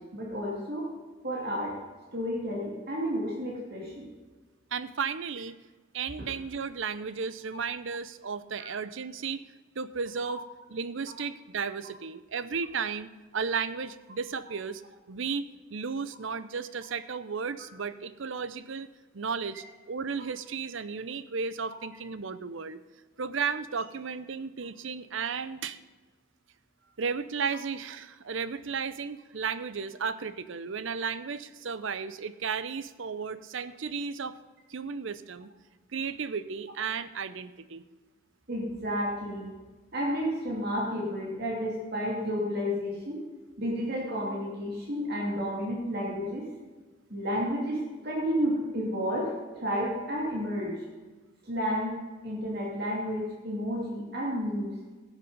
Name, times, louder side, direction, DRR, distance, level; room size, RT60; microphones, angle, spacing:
voice 1, 0.1-0.9 1.2-1.8 2.1-4.1 7.5-7.6 8.6-8.7 10.3-10.4 19.5-19.6 21.7-21.8 38.5-39.5 39.9-43.2 43.6-46.5 47.1-47.8 48.0-50.7 51.4-52.0 52.2-54.7, equal, 50° right, -2 dB, 2.5 m, -31 dB
voice 2, 4.7-5.6 5.9-9.4 9.8-10.4 10.7-14.8 15.1-22.8 23.2-25.8 27.0-34.4 34.7-35.5 35.9-37.8, right 5 dB, 65° right, 15 dB, 0.6 m, -34 dB
16.0 x 7.3 x 5.4 m, 1.3 s
head